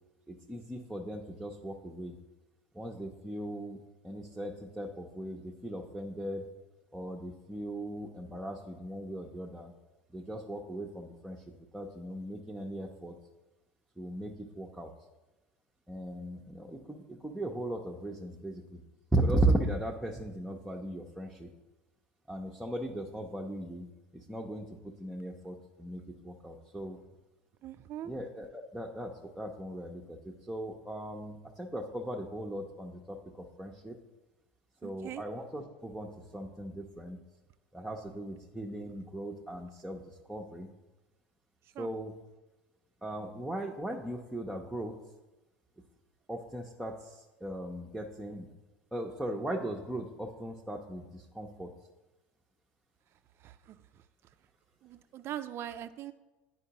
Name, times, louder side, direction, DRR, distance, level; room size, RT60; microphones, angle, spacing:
voice 1, 0.3-2.2 2.7-6.5 6.9-9.7 10.1-13.1 14.0-14.9 15.9-18.8 19.1-21.5 22.3-23.9 24.1-27.0 28.0-34.0 34.8-37.2 37.7-40.7 41.8-42.1 43.0-45.0 46.3-48.5 48.9-51.7, right 1 dB, 5° right, -2 dB, 0.6 m, -37 dB
voice 2, 27.6-28.1 34.8-35.2 41.7-41.9 53.4-53.8 54.8-56.1, right 11 dB, 45° right, 10 dB, 0.3 m, -41 dB
9.8 x 4.5 x 2.9 m, 1.1 s
hypercardioid pair, 85°, 6 cm